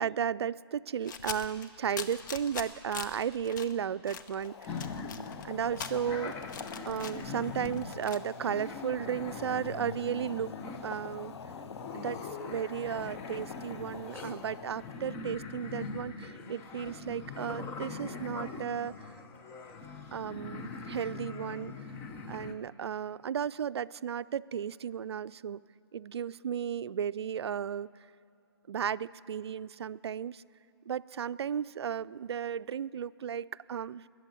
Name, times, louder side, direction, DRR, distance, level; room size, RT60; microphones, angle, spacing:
voice 1, 0.0-4.8 5.4-6.3 6.9-10.5 10.8-11.3 11.9-12.2 12.4-18.9 20.1-21.7 22.3-25.6 25.9-27.9 28.7-30.4 30.9-34.1, right 8 dB, 75° right, 16 dB, 0.4 m, -34 dB
sound 1, 1.0-3.7 4.1-8.2, left 6 dB, 45° left, 1.0 m, -43 dB
Boiling, 4.2-15.2, left 7 dB, 85° left, 0.4 m, -47 dB
sound 2, 4.7-22.5, left 4 dB, 15° left, 0.7 m, -42 dB
20.0 x 7.6 x 9.2 m, 2.6 s
hypercardioid pair, 150°, 14 cm